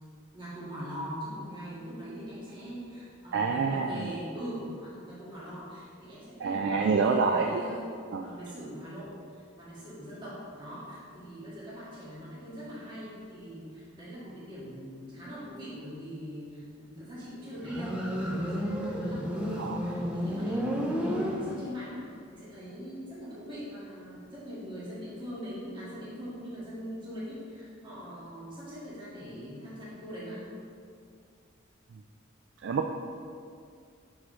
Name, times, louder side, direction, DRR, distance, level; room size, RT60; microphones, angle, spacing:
voice 1, 0.3-22.0 22.3-30.4, equal, 25° right, -9 dB, 1.7 m, -42 dB
voice 2, 3.3-4.1 6.4-7.6 8.1-8.3 19.6-19.8 32.6-32.9, right 4 dB, 60° right, 3 dB, 0.3 m, -27 dB
Motorcycle, 17.6-21.9, equal, 5° right, 0.6 m, -32 dB
5.7 x 4.8 x 4.9 m, 2.3 s
head